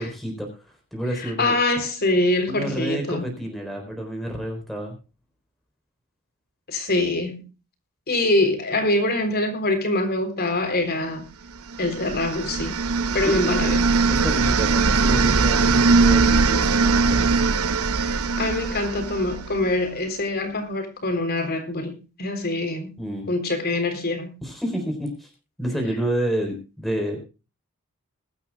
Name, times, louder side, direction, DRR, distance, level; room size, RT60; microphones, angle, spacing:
voice 1, 0.0-1.6 2.5-4.9 13.2-13.5 14.1-17.3 23.0-23.3 24.4-25.3 25.6-27.2, equal, ahead, 4.0 m, -29 dB
voice 2, 1.2-3.3 6.7-7.4 8.1-11.3 11.8-12.9 13.1-13.9 18.0-23.0 23.3-24.4, left 2 dB, 45° left, 3.6 m, -24 dB
sound 1, 11.7-19.7, right 4 dB, 75° right, 0.9 m, -21 dB
21.5 x 12.0 x 2.3 m
head